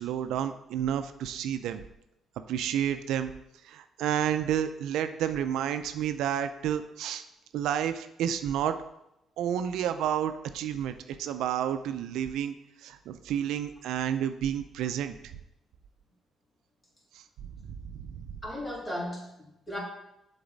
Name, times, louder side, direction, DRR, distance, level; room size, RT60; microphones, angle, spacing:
voice 1, 0.0-1.8 2.5-3.3 3.6-7.2 7.5-8.8 9.4-12.5 12.8-15.1 17.1-17.2 17.9-18.1, right 9 dB, 85° right, 10 dB, 0.4 m, -30 dB
voice 2, 18.4-19.8, left 1 dB, 25° left, -4 dB, 2.5 m, -36 dB
7.0 x 4.0 x 3.9 m, 0.85 s
cardioid pair, 90°, 0 cm